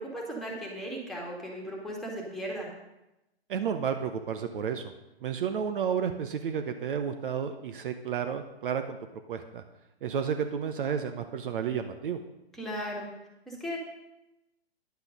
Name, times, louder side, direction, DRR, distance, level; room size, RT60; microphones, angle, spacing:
voice 1, 0.0-2.7 12.5-13.1 13.5-13.8, equal, ahead, -3 dB, 2.2 m, -36 dB
voice 2, 3.5-4.9 5.2-9.0 9.3-9.6 10.0-12.2, right 7 dB, 55° right, 8 dB, 0.9 m, -31 dB
10.5 x 8.1 x 5.3 m, 0.95 s
hypercardioid pair, 130°, 32 cm